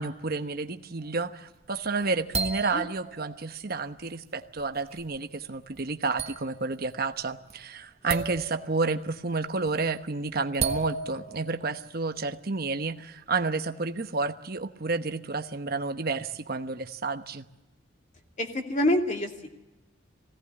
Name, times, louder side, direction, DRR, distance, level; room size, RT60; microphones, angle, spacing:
voice 1, 0.0-17.5, right 3 dB, 50° right, 7 dB, 1.0 m, -30 dB
sound 1, 1.6-3.4 4.0-4.2 4.6-5.2 5.7-5.8 6.2-6.9 7.1-7.5 8.1-8.8 9.4-9.8 10.5-11.9, right 4 dB, 35° right, 1.5 m, -34 dB
voice 2, 18.4-19.5, left 1 dB, 40° left, 2 dB, 2.6 m, -27 dB
21.0 x 17.5 x 9.7 m, 1.0 s
head